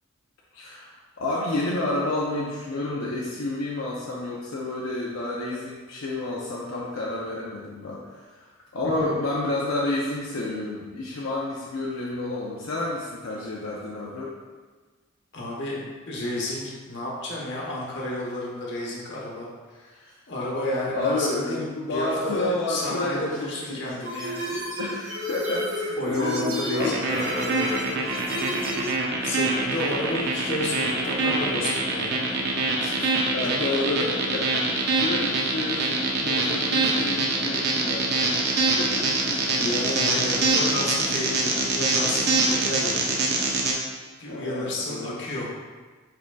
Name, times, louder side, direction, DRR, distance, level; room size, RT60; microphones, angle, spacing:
voice 1, 0.5-14.4 19.9-20.1 20.9-23.8 24.2-27.1 33.3-39.6 40.2-40.7 44.2-45.2, left 2 dB, 80° left, -5 dB, 0.6 m, -30 dB
voice 2, 15.3-15.8 16.1-16.6 16.9-19.9 20.3-24.5 26.0-27.8 28.8-28.9 29.2-32.4 32.8-33.1 33.4-33.5 39.5-43.0 44.2-45.5, left 1 dB, 60° left, -3 dB, 1.0 m, -31 dB
sound 1, 24.0-28.9, left 1 dB, 75° right, 1.2 m, -32 dB
sound 2, 26.8-43.7, right 3 dB, 55° right, 0.6 m, -24 dB
4.9 x 4.6 x 2.3 m, 1.4 s
head